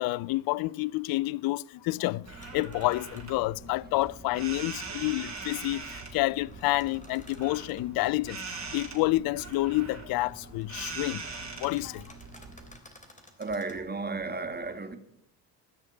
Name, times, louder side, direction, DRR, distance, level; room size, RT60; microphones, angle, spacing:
voice 1, 0.0-2.3 2.5-8.4 8.7-11.2 11.6-12.1, left 19 dB, 55° left, 0.5 m, -29 dB
sound 1, 2.2-12.7, right 4 dB, 35° right, 4.5 m, -42 dB
sound 2, 2.4-3.4 4.9-7.9 9.5-9.6 10.0-13.8, left 1 dB, 15° left, 3.1 m, -56 dB
voice 2, 13.4-15.0, right 3 dB, 20° right, 1.7 m, -33 dB
17.0 x 6.4 x 8.1 m
supercardioid pair, 65°, 45 cm